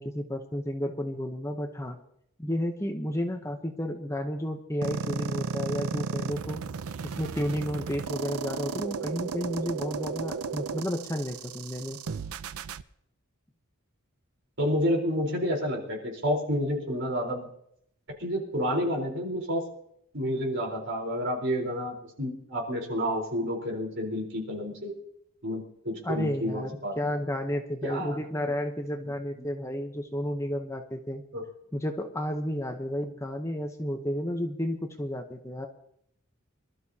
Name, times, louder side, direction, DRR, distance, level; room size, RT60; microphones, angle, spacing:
voice 1, 0.0-2.0 2.4-6.6 7.0-12.0 26.0-31.2 31.7-35.7, equal, 15° left, 4 dB, 0.9 m, -32 dB
sound 1, 4.8-12.8, right 5 dB, 85° right, 0.6 m, -34 dB
voice 2, 14.6-17.5 18.2-19.6 20.1-24.9 25.4-27.0 27.8-28.2 31.3-31.4, equal, 55° right, 1 dB, 4.1 m, -29 dB
24.5 x 12.5 x 2.8 m, 0.72 s
head